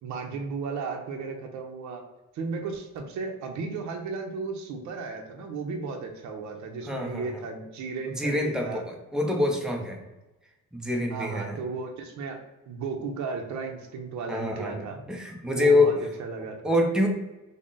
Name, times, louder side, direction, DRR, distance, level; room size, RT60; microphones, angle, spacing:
voice 1, 0.0-2.0 2.3-8.8 9.2-9.4 11.1-12.4 12.7-15.0 15.5-16.6, right 4 dB, 65° right, 2 dB, 0.6 m, -35 dB
voice 2, 6.9-7.4 8.1-10.0 10.7-11.6 14.3-15.9 16.6-17.1, left 2 dB, ahead, 1 dB, 0.4 m, -25 dB
3.8 x 2.0 x 3.6 m, 1.0 s
cardioid pair, 165°, 31 cm